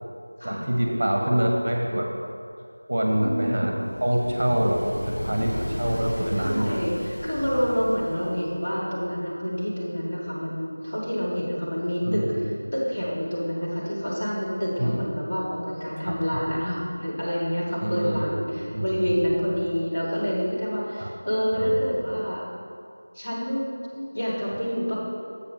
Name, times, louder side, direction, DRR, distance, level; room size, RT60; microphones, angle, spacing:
voice 1, 0.4-2.1 2.9-3.7 4.0-4.8 5.1-6.8 12.1-12.4 14.8-15.0 16.1-16.2 17.8-18.4 18.7-19.1 21.0-21.1 21.5-21.8, right 1 dB, 40° right, 1 dB, 0.8 m, -25 dB
voice 2, 3.2-3.9 6.4-12.2 12.7-22.4 23.1-24.9, equal, 35° left, -7 dB, 1.9 m, -27 dB
sound 1, 3.9-8.6, equal, 70° left, 0.6 m, -35 dB
7.0 x 5.3 x 6.0 m, 2.4 s
figure-of-eight pair, 175°, 0 cm